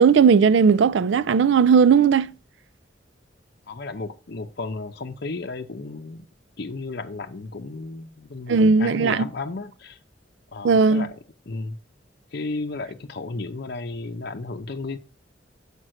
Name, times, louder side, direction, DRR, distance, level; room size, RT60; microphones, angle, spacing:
voice 1, 0.0-2.3 8.5-9.3 10.6-11.1, right 5 dB, 75° right, 0.4 m, -17 dB
voice 2, 3.7-6.3 6.6-10.0 10.5-11.2 11.5-11.8 12.3-15.0, left 3 dB, 60° left, 0.7 m, -33 dB
6.3 x 5.2 x 6.3 m
head